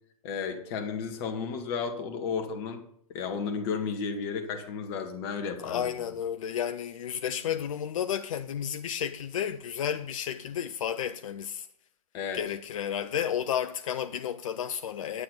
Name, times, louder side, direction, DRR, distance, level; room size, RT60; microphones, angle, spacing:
voice 1, 0.2-2.8 3.1-5.9 12.1-12.4, left 5 dB, 40° left, 1.9 m, -33 dB
voice 2, 5.6-11.7 12.3-15.2, left 9 dB, 60° left, 0.6 m, -32 dB
10.0 x 8.6 x 5.5 m
figure-of-eight pair, 110°, 19 cm